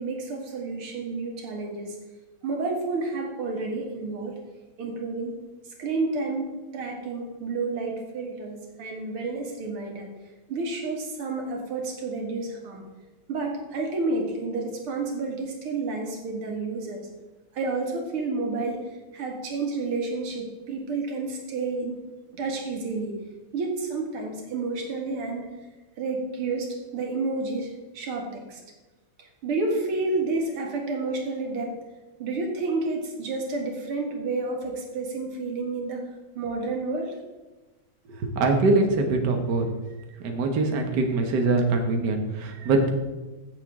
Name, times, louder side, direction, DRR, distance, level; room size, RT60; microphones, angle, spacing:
voice 1, 0.0-2.0 2.4-4.3 4.8-5.3 5.8-10.1 10.5-12.9 13.3-17.1 17.5-22.0 22.3-23.2 23.5-25.5 26.0-28.6 29.2-31.8 32.2-36.1 36.4-37.1, right 3 dB, 90° right, 1 dB, 2.7 m, -30 dB
voice 2, 38.1-39.7 40.2-42.9, right 3 dB, 55° right, 4 dB, 1.7 m, -23 dB
15.5 x 6.9 x 3.6 m, 1.1 s
omnidirectional pair, 2.3 m